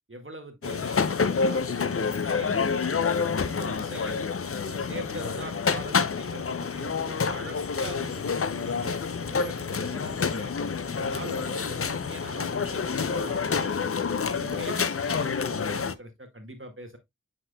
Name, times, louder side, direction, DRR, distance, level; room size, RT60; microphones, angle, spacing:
voice 1, 0.1-3.1 3.4-4.2 4.6-10.5 10.9-13.7 14.2-17.0, right 1 dB, 40° right, 1.8 m, -42 dB
sound 1, 0.6-15.9, left 5 dB, 45° left, 0.5 m, -28 dB
7.6 x 5.9 x 2.2 m
wide cardioid pair, 45°, 31 cm